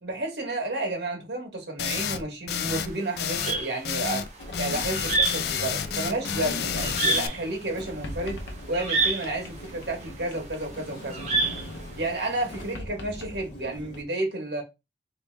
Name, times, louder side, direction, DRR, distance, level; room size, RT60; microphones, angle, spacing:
voice 1, 0.0-4.2 4.6-8.4 8.7-11.2 12.0-14.6, right 2 dB, 65° right, 1.4 m, -31 dB
sound 1, 1.8-2.2 2.5-2.9 3.2-3.6 3.8-4.3 4.5-7.3, left 7 dB, 60° left, 0.4 m, -30 dB
sound 2, 2.7-12.6, right 3 dB, 40° right, 0.9 m, -28 dB
Sliding door, 4.4-14.0, left 1 dB, 85° left, 0.8 m, -40 dB
3.1 x 3.1 x 3.3 m
head